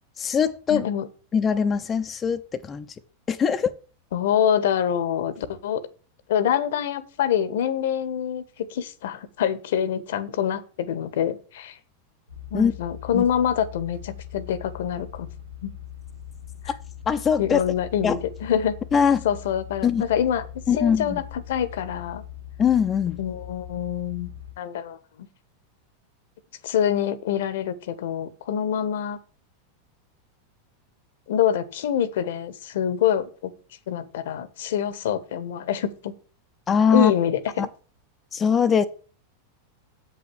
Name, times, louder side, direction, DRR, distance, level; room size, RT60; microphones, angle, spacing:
voice 1, 0.2-0.9 1.3-2.9 3.3-3.7 12.5-12.7 13.1-13.2 17.1-17.6 18.0-18.2 18.9-19.2 19.8-20.0 20.7-21.2 22.6-23.2 36.7-37.1 38.3-38.9, left 7 dB, 25° left, 0.8 m, -21 dB
voice 2, 0.7-1.1 4.1-5.8 6.3-11.8 12.5-15.3 15.6-15.7 16.6-16.7 17.4-18.8 19.2-20.5 20.8-22.2 23.2-24.3 24.6-25.0 26.6-29.2 31.3-33.5 33.9-36.1 36.9-37.7, left 9 dB, 65° left, 1.2 m, -25 dB
sound 1, 12.3-24.6, left 10 dB, 90° right, 2.9 m, -41 dB
8.0 x 5.9 x 7.8 m
hypercardioid pair, 95°, 0 cm